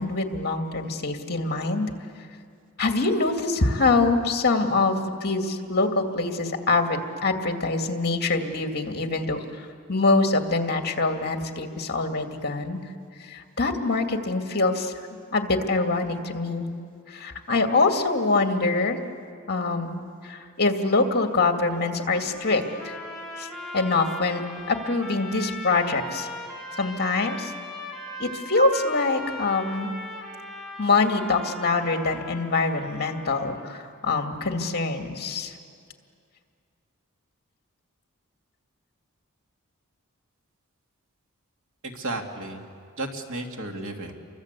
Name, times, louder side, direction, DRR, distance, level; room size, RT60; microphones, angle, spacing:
voice 1, 0.0-1.9 2.8-12.8 13.2-16.7 17.1-19.0 19.5-22.9 23.4-23.5 23.7-26.3 26.8-27.5 28.2-29.9 30.8-35.5, left 3 dB, 50° left, 5 dB, 2.2 m, -24 dB
sound 1, 22.1-33.7, left 1 dB, ahead, 4.0 m, -39 dB
voice 2, 41.8-42.6 43.0-44.1, right 2 dB, 65° right, 3 dB, 2.7 m, -33 dB
29.0 x 24.0 x 8.3 m, 2.3 s
head